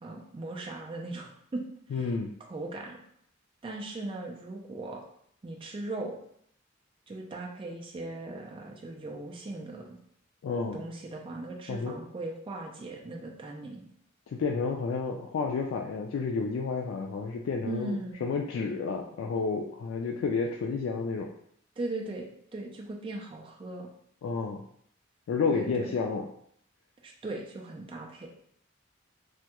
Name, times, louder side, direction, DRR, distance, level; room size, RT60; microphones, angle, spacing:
voice 1, 0.0-1.6 1.9-2.1 2.5-3.0 3.6-5.0 5.4-6.2 7.1-10.0 10.7-13.8 17.6-18.2 21.8-23.9 25.5-25.9 27.0-28.3, right 2 dB, 25° right, 0 dB, 0.4 m, -38 dB
voice 2, 1.9-2.3 10.4-10.8 11.7-12.0 14.3-21.3 24.2-24.6 25.3-26.3, left 4 dB, 75° left, 1 dB, 0.3 m, -31 dB
3.3 x 2.2 x 2.9 m, 0.68 s
head